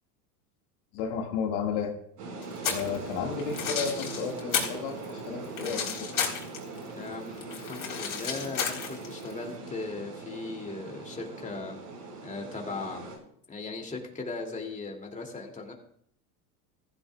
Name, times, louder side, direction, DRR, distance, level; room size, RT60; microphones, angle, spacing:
voice 1, 0.9-1.9 2.7-6.1, left 6 dB, 65° left, 2 dB, 2.1 m, -33 dB
sound 1, 2.2-13.2, right 3 dB, 80° right, 5.2 m, -41 dB
sound 2, 2.4-3.0 3.4-4.8 5.0-6.8 7.1-9.3, left 7 dB, 40° left, 3.9 m, -32 dB
voice 2, 6.9-11.8 12.2-13.1 13.5-15.7, left 3 dB, 15° left, 1 dB, 2.6 m, -38 dB
15.0 x 15.0 x 2.4 m, 0.67 s
hypercardioid pair, 95°, 47 cm